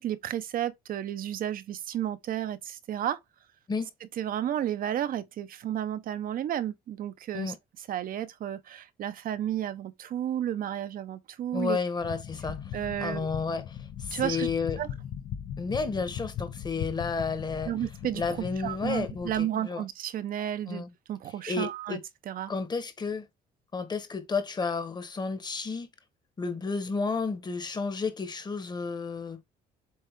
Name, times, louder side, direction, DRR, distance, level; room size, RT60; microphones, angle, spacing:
voice 1, 0.0-3.2 4.2-7.5 7.9-11.8 12.7-13.3 14.1-14.5 14.8-14.9 17.7-22.0 22.3-22.5, right 11 dB, 60° right, 0.9 m, -32 dB
voice 2, 11.5-12.6 13.0-14.8 15.6-17.7 18.1-19.8 20.7-20.9 21.5-22.0 22.5-23.3 23.7-25.9 26.4-29.4, left 4 dB, 25° left, 1.4 m, -31 dB
sound 1, 12.0-19.4, left 9 dB, 60° left, 0.8 m, -39 dB
7.9 x 3.8 x 3.6 m
cardioid pair, 110°, 17 cm